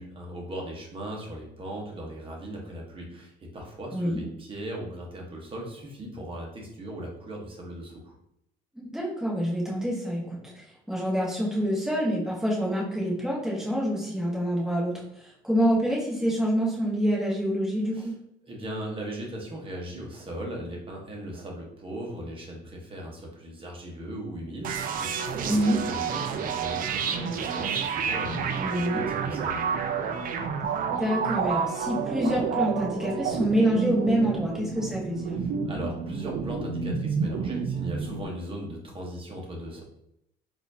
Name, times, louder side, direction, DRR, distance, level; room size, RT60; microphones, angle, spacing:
voice 1, 0.0-8.1 17.9-18.1 18.4-29.6 35.4-39.8, right 1 dB, 30° right, -1 dB, 1.1 m, -38 dB
voice 2, 8.9-18.1 25.5-25.8 28.6-29.0 30.9-35.4, equal, 5° right, -5 dB, 1.2 m, -26 dB
sound 1, 24.6-38.3, right 6 dB, 55° right, 0.4 m, -30 dB
4.1 x 2.6 x 2.7 m, 0.78 s
cardioid pair, 110°, 17 cm